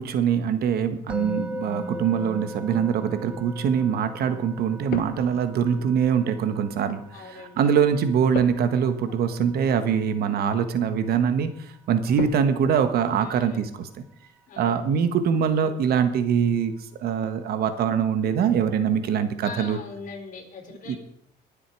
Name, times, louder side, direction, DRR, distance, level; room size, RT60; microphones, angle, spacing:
voice 1, 0.0-7.0 7.3-11.5 11.9-13.9 14.6-16.7 17.0-19.8 20.9-21.0, right 7 dB, 65° right, 10 dB, 1.5 m, -23 dB
Musical instrument, 1.1-12.2, equal, 5° right, 1.5 m, -40 dB
sound 1, 3.3-3.6 4.9-5.8 8.3-9.9 10.1-10.4 12.2-13.0, left 10 dB, 70° left, 1.0 m, -36 dB
voice 2, 7.1-7.9 12.0-12.3 13.2-13.7 14.5-15.0 19.4-21.0, left 4 dB, 50° left, 1 dB, 4.2 m, -41 dB
21.5 x 7.8 x 4.7 m, 0.72 s
cardioid pair, 110°, 17 cm